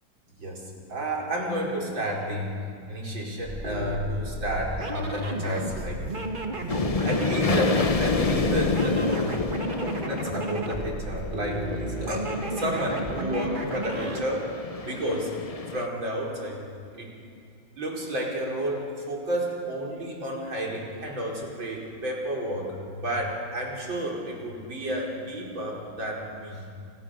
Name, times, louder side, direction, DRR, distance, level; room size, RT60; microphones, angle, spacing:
voice 1, 0.4-2.6 2.9-6.2 7.0-9.4 9.8-14.5 14.8-15.4 15.7-16.6 16.9-17.1 17.8-26.6, equal, 70° right, -2 dB, 5.7 m, -31 dB
sound 1, 3.4-14.3, right 2 dB, 25° right, 2.1 m, -33 dB
sound 2, 6.7-15.9, left 4 dB, 65° left, 0.3 m, -29 dB
29.0 x 28.0 x 6.7 m, 2.4 s
omnidirectional pair, 2.2 m